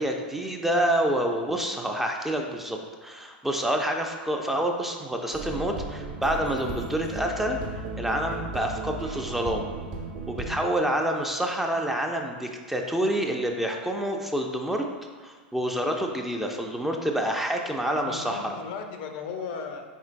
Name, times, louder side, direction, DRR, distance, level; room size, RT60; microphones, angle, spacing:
voice 1, 0.0-7.6 8.0-9.7 10.3-14.9 15.2-18.6, right 1 dB, 5° right, 2 dB, 0.4 m, -28 dB
sound 1, 5.3-10.6, right 3 dB, 60° right, 0.7 m, -35 dB
voice 2, 17.8-19.8, left 5 dB, 60° left, 5 dB, 0.5 m, -36 dB
4.4 x 3.7 x 2.5 m, 1.5 s
hypercardioid pair, 105°, 5 cm